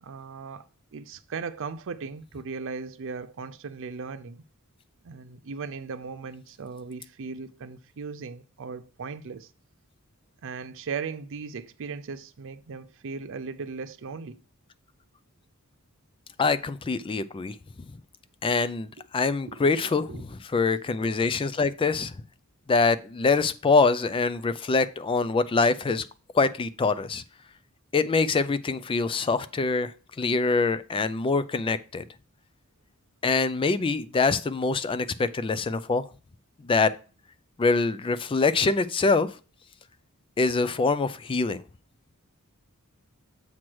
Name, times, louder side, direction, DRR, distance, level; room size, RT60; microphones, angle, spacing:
voice 1, 0.0-4.4 5.0-9.5 10.4-14.4 19.0-19.1 19.5-19.7 20.1-20.2, right 5 dB, 60° right, 0.5 m, -37 dB
voice 2, 16.4-17.5 18.4-22.1 22.7-26.0 26.3-27.2 27.9-29.9 30.2-32.0 33.2-36.0 36.6-36.9 37.6-39.3 40.4-41.6, left 4 dB, 25° left, 0.4 m, -24 dB
7.3 x 3.1 x 6.0 m
head